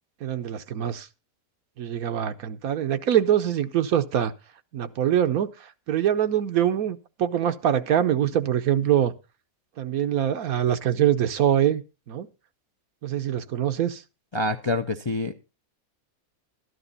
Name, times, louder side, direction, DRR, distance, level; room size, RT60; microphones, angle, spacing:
voice 1, 0.2-1.1 1.8-4.3 4.7-5.5 5.9-9.1 9.8-12.3 13.0-14.0, right 10 dB, 80° right, 1.3 m, -24 dB
voice 2, 14.3-15.3, left 2 dB, 35° left, 0.4 m, -26 dB
13.0 x 11.0 x 4.0 m
omnidirectional pair, 1.5 m